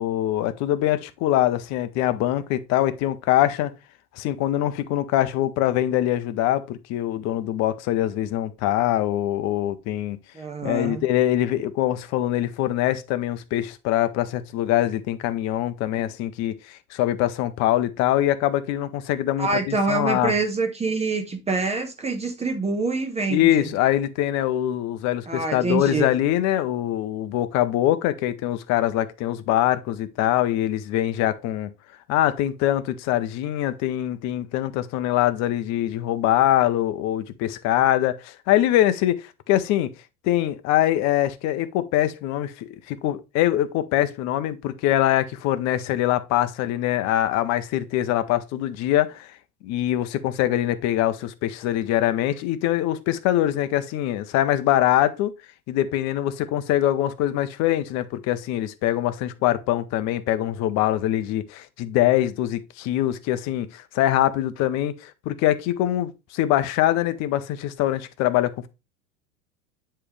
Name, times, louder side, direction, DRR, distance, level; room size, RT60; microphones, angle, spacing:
voice 1, 0.0-3.7 4.2-10.2 10.6-20.3 23.3-31.7 32.1-39.9 40.2-49.3 49.6-55.3 55.7-68.7, left 13 dB, 40° left, 0.7 m, -23 dB
voice 2, 10.3-11.0 19.4-23.7 25.3-26.1, right 3 dB, 15° right, 1.0 m, -26 dB
9.7 x 3.3 x 3.2 m
figure-of-eight pair, 85°, 43 cm